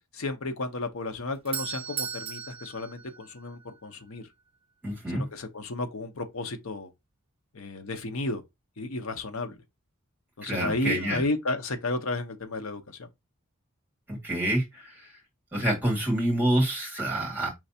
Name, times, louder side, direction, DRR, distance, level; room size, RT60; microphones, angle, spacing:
voice 1, 0.1-4.3 5.1-6.9 7.5-8.4 8.8-9.6 10.4-13.1, left 2 dB, 70° left, 0.8 m, -33 dB
Doorbell, 1.1-3.9, right 8 dB, 25° right, 0.4 m, -37 dB
voice 2, 4.8-5.2 10.4-11.2 14.1-15.1 15.5-17.5, right 1 dB, 10° right, 1.8 m, -27 dB
4.8 x 3.2 x 2.7 m
head